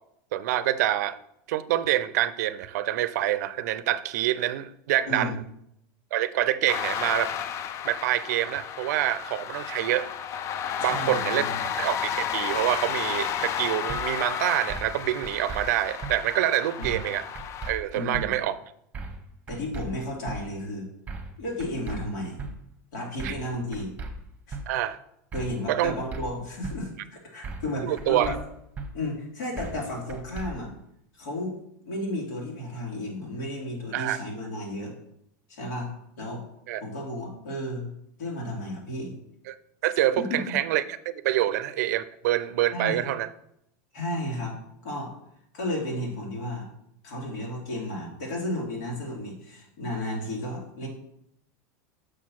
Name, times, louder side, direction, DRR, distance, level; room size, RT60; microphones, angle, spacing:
voice 1, 0.3-1.2 1.5-5.4 6.1-7.4 7.8-10.2 10.8-11.5 11.8-17.3 17.7-18.6 23.2-23.3 24.7-25.0 25.7-25.9 27.8-28.3 33.9-34.2 36.7-36.8 39.5-39.6 39.8-43.3, right 13 dB, 75° right, 15 dB, 0.5 m, -26 dB
sound 1, 6.7-17.7, left 9 dB, 30° left, 0.4 m, -32 dB
voice 2, 10.8-11.6 16.8-16.9 17.9-18.3 19.5-20.9 21.4-22.4 22.9-23.9 24.5-24.6 25.3-28.3 28.9-30.7 31.1-31.6 31.8-34.9 35.5-35.9 36.2-36.4 36.8-37.9 38.2-39.2 40.2-40.4 42.7-43.0 43.9-44.6 44.8-45.1 45.5-46.7 47.0-50.9, left 1 dB, 85° left, -2 dB, 3.0 m, -33 dB
sound 2, 13.9-14.0 14.7-14.9 15.2-15.6 16.0-16.1 16.8-17.1 17.3-17.7 18.1-18.3 18.9-19.2 19.5-19.9 20.3-20.4 21.1-21.3 21.6-22.0 22.4-22.5 23.2-23.5 23.7-24.1 24.5-24.6 25.3-25.6 25.8-26.2 26.6-26.8 27.4-27.7 28.0-28.4 28.8-28.9 29.6-29.8 30.1-30.5, right 4 dB, 15° right, 1.0 m, -36 dB
6.5 x 4.7 x 5.9 m, 0.76 s
supercardioid pair, 140°, 9 cm